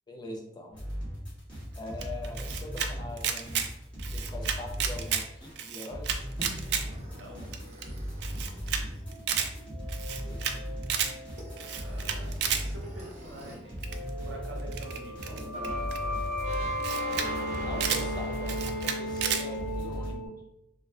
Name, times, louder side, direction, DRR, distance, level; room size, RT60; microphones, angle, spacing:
voice 1, 0.1-0.8 1.8-3.7 4.1-6.3 10.2-10.6 17.6-20.3, left 1 dB, 25° left, 1 dB, 0.4 m, -42 dB
sound 1, 0.7-13.0 13.2-20.1, equal, 5° left, 1.1 m, -38 dB
Camera, 2.0-2.9 3.2-3.7 4.0-5.2 5.6-6.8 7.2-7.3 7.5-7.6 7.8-7.9 8.2-8.8 9.1-9.5 9.9-10.5 10.8-11.1 11.6-12.6 13.8-14.1 14.7-16.0 16.5-16.6 16.8-17.3 17.5-18.0 18.5-19.4, right 8 dB, 60° right, 0.3 m, -31 dB
sound 2, 6.4-13.6 13.8-20.3, equal, 35° right, 0.8 m, -37 dB
voice 2, 6.8-7.8 11.8-15.6, right 1 dB, 90° right, -1 dB, 0.7 m, -47 dB
2.3 x 2.1 x 3.4 m, 0.89 s
head